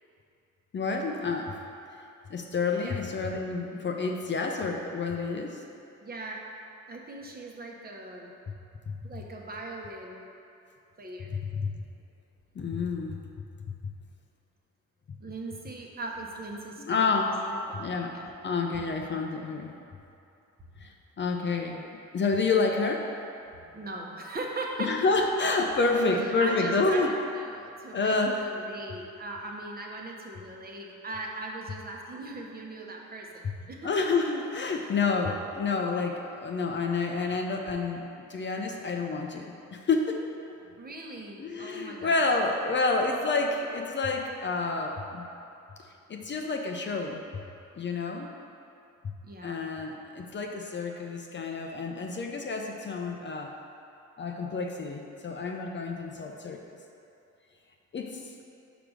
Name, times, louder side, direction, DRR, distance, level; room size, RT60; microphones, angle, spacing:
voice 1, 0.7-1.5 2.3-5.6 8.5-8.6 8.9-9.2 11.3-11.7 12.6-13.2 13.7-13.9 16.8-17.4 17.7-18.2 18.4-19.7 20.8-21.9 22.1-23.1 24.8-27.2 27.9-28.5 33.4-33.5 33.8-40.2 41.4-45.3 46.1-47.4 47.8-48.3 49.0-49.1 49.4-53.5 54.2-56.8 57.9-58.2, left 3 dB, 40° left, 2 dB, 0.6 m, -29 dB
voice 2, 6.0-6.4 6.9-8.3 9.0-10.3 11.0-11.4 15.2-17.2 17.5-17.8 18.1-18.3 18.7-19.0 23.5-24.9 26.4-33.9 40.8-42.2 49.2-49.6, right 2 dB, 30° right, -1 dB, 1.1 m, -40 dB
5.1 x 4.9 x 6.2 m, 2.6 s
cardioid pair, 90°, 30 cm